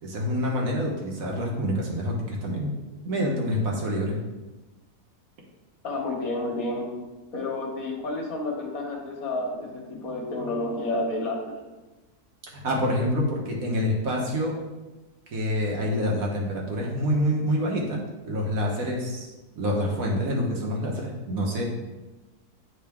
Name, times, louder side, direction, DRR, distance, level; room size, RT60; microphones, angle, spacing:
voice 1, 0.0-2.7 3.0-4.2 12.5-14.6 15.3-18.0 18.2-19.3 19.6-21.6, equal, 65° right, -1 dB, 1.6 m, -27 dB
voice 2, 5.8-6.9 7.3-11.6, left 2 dB, 65° left, 0 dB, 1.6 m, -30 dB
9.3 x 3.8 x 3.5 m, 1.1 s
omnidirectional pair, 1.6 m